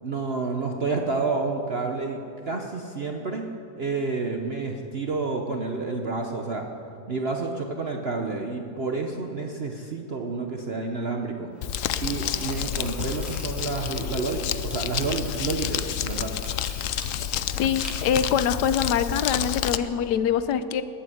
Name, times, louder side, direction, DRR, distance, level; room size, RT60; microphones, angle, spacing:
voice 1, 0.0-3.5 3.8-6.7 7.1-11.5 12.0-16.3, right 3 dB, 45° right, 3 dB, 1.0 m, -29 dB
sound 1, 11.5-20.1, equal, ahead, 3.7 m, -44 dB
Crumpling crinkling, 11.6-19.8, left 10 dB, 65° left, 0.9 m, -29 dB
voice 2, 17.6-20.8, left 8 dB, 85° left, 13 dB, 1.3 m, -24 dB
20.0 x 8.9 x 7.9 m, 2.6 s
omnidirectional pair, 1.8 m